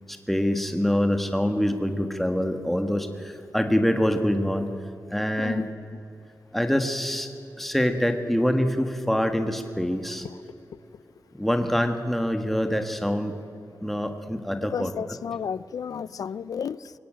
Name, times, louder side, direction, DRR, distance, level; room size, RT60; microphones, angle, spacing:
voice 1, 0.1-4.7 5.1-5.6 6.5-7.3 7.6-10.2 11.3-13.4 13.8-14.9, equal, 5° left, 1.6 m, -25 dB
voice 2, 5.4-6.0 14.7-16.9, left 7 dB, 80° left, 0.6 m, -33 dB
24.0 x 23.5 x 9.0 m
wide cardioid pair, 180°, 6 cm